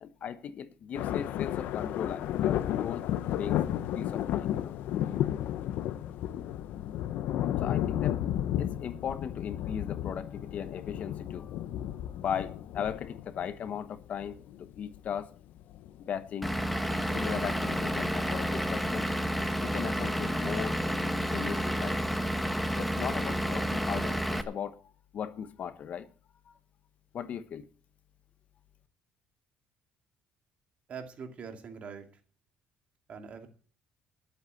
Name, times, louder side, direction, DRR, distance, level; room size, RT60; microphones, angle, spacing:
voice 1, 0.0-3.0 3.4-3.6 3.9-4.7 7.6-8.2 8.6-11.5 12.1-15.3 16.0-16.5 17.1-19.1 19.6-20.8 21.3-22.0 22.8-26.1 26.5-26.6 27.1-27.7, left 8 dB, 55° left, 1.1 m, -37 dB
sound 1, 0.9-15.1 15.6-15.9 16.8-17.0 17.8-17.9 19.4-19.5, left 12 dB, 75° left, 0.8 m, -33 dB
Vehicle / Engine, 16.4-24.4, equal, ahead, 1.1 m, -30 dB
voice 2, 30.9-32.1 33.1-33.5, right 6 dB, 45° right, 2.5 m, -43 dB
11.5 x 8.1 x 7.9 m
cardioid pair, 110°, 3 cm